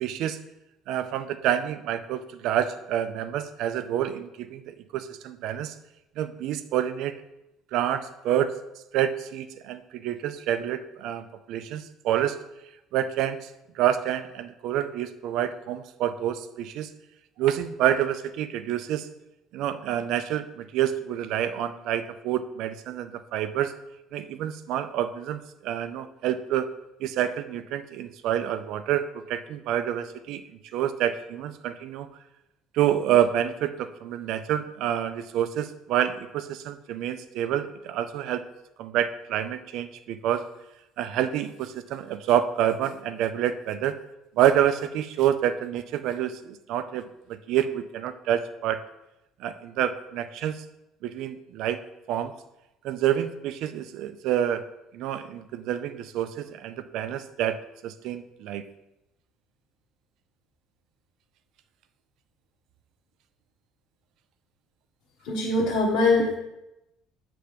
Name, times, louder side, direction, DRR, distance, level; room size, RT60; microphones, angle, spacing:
voice 1, 0.0-0.4 0.9-5.7 6.2-7.2 7.7-8.5 8.9-12.4 12.9-13.5 13.8-16.9 17.4-19.1 19.5-23.7 24.1-26.7 27.0-30.4 30.7-32.1 32.7-38.4 38.8-40.5 41.0-44.0 44.4-47.0 47.3-48.8 49.4-50.6 51.0-51.8 52.1-52.3 52.8-54.7 54.9-58.6, right 10 dB, 60° right, 11 dB, 0.4 m, -28 dB
voice 2, 65.3-66.4, left 2 dB, 70° left, -4 dB, 1.2 m, -22 dB
6.7 x 3.4 x 5.1 m, 0.92 s
cardioid pair, 155°, 0 cm